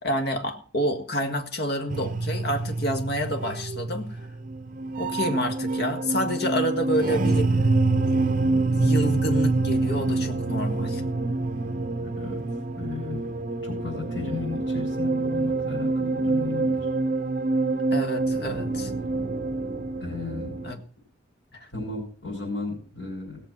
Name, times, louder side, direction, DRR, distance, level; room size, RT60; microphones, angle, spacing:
voice 1, 0.0-4.1 5.0-7.5 8.6-11.0 17.9-18.9 20.6-20.8 21.6-21.7, equal, 60° left, 6 dB, 1.7 m, -28 dB
sound 1, 1.9-20.7, right 3 dB, 45° right, 0.8 m, -26 dB
voice 2, 11.6-12.4 12.8-13.3 13.6-16.9 20.0-20.5 21.7-23.4, left 3 dB, 80° left, -4 dB, 5.5 m, -35 dB
18.0 x 6.8 x 6.0 m, 0.42 s
head